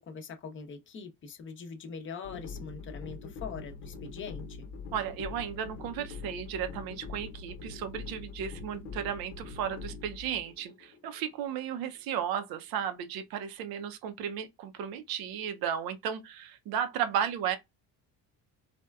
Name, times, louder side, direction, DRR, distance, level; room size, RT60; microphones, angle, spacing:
voice 1, 0.0-4.7, left 5 dB, 30° left, 0.7 m, -42 dB
sound 1, 2.2-12.3, left 4 dB, 85° left, 0.9 m, -43 dB
voice 2, 4.9-17.6, right 9 dB, 70° right, 0.6 m, -34 dB
4.2 x 2.2 x 2.3 m
cardioid pair, 130°, 37 cm